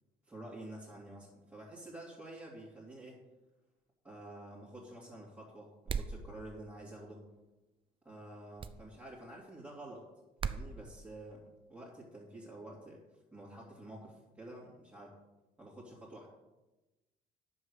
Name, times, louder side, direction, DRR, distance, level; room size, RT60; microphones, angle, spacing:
voice 1, 0.3-3.2 4.0-7.3 8.0-10.1 10.4-15.2 15.6-16.3, right 1 dB, 10° right, -7 dB, 2.9 m, -49 dB
sound 1, 5.9-6.2 8.6-8.8 10.4-10.7, right 6 dB, 30° right, 0.6 m, -36 dB
9.9 x 7.1 x 6.5 m, 1.1 s
cardioid pair, 110°, 17 cm